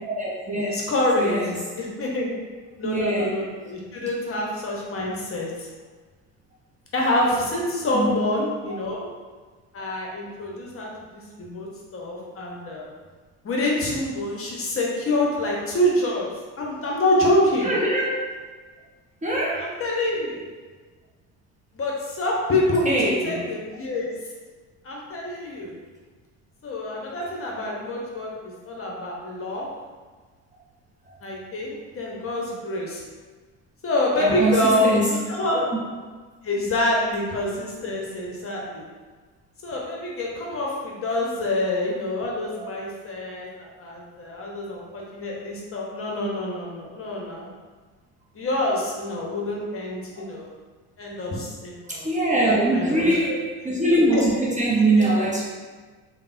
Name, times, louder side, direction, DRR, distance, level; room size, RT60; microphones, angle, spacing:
voice 1, 0.0-0.8 1.2-1.6 2.8-3.3 7.9-8.1 17.6-18.1 19.2-19.7 22.9-23.4 34.2-35.1 42.5-42.6 51.9-53.4 53.6-55.5, right 2 dB, 20° right, -5 dB, 0.6 m, -22 dB
voice 2, 0.6-1.4 1.8-2.4 2.8-5.7 6.9-9.1 9.7-12.9 13.4-16.3 16.6-17.7 19.6-20.4 21.7-24.1 24.8-25.7 26.6-29.7 31.2-33.0 33.8-35.7 36.4-38.8 39.6-47.5 48.3-50.5 51.0-52.1 52.4-53.4 54.1-54.2 55.0-55.1, left 1 dB, 35° left, -2 dB, 0.8 m, -26 dB
3.3 x 2.1 x 2.5 m, 1.4 s
hypercardioid pair, 70°, 39 cm